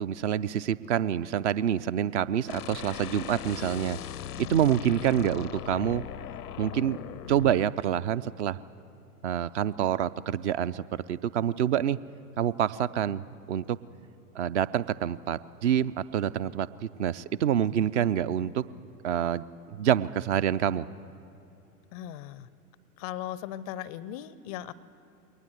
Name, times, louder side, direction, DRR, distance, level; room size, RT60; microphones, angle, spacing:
voice 1, 0.0-4.0 4.4-6.0 6.6-7.0 7.3-8.6 9.2-12.0 12.4-13.8 14.3-18.6 19.0-20.9, right 10 dB, 50° right, 17 dB, 0.6 m, -27 dB
sound 1, 2.5-7.7, left 10 dB, 80° left, 0.5 m, -39 dB
voice 2, 21.9-22.5 23.0-24.7, left 11 dB, 25° left, 19 dB, 0.4 m, -38 dB
21.5 x 19.0 x 7.9 m, 2.8 s
figure-of-eight pair, 90°, 46 cm